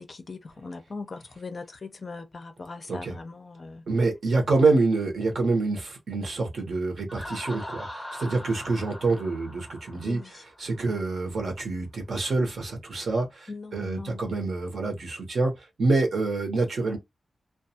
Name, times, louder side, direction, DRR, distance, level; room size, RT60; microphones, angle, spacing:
voice 1, 0.0-3.8 10.0-10.4 13.5-14.3, left 3 dB, 40° left, 0.4 m, -40 dB
voice 2, 3.9-10.2 10.6-17.0, right 3 dB, 60° right, 0.9 m, -26 dB
Laughter, 7.1-10.8, left 1 dB, ahead, 0.7 m, -41 dB
2.2 x 2.2 x 2.6 m
wide cardioid pair, 165°, 0 cm